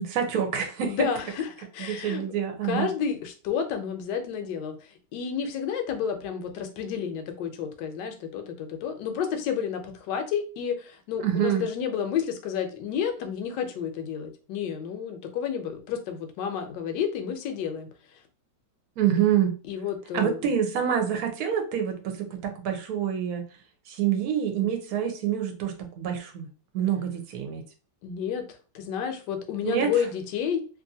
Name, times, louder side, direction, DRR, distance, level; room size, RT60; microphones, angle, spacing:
voice 1, 0.0-1.0 1.8-2.9 11.2-11.6 19.0-19.6 20.1-23.4 23.9-26.5 26.7-27.6 29.6-29.9, right 9 dB, 65° right, 4 dB, 1.1 m, -26 dB
voice 2, 0.8-2.2 2.6-4.8 5.1-17.9 19.6-20.4 28.0-28.4 28.7-30.6, left 7 dB, 75° left, 6 dB, 1.2 m, -30 dB
2.9 x 2.5 x 2.7 m, 0.35 s
omnidirectional pair, 1.9 m